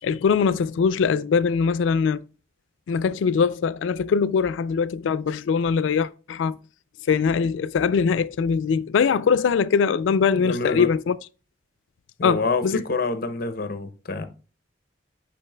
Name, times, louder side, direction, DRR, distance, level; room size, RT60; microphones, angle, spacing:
voice 1, 0.0-2.2 2.9-6.6 7.1-11.1 12.2-12.8, left 6 dB, 90° left, 0.3 m, -22 dB
voice 2, 10.4-10.9 12.2-14.3, left 3 dB, 50° left, 0.7 m, -27 dB
8.7 x 5.4 x 2.2 m
head